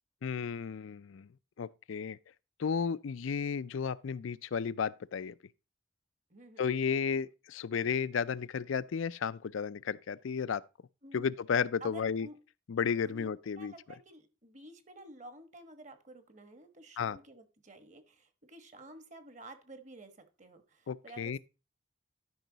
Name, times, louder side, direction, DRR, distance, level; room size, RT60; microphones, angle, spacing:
voice 1, 0.2-1.3 1.6-2.2 2.6-5.3 6.6-10.6 11.1-12.3 12.7-13.7 17.0-17.2 20.9-21.4, left 6 dB, 80° left, 0.4 m, -33 dB
voice 2, 6.3-6.7 11.0-11.3 11.8-12.4 13.0-20.1 20.4-21.4, right 2 dB, 35° right, 1.3 m, -51 dB
12.0 x 5.5 x 3.9 m
head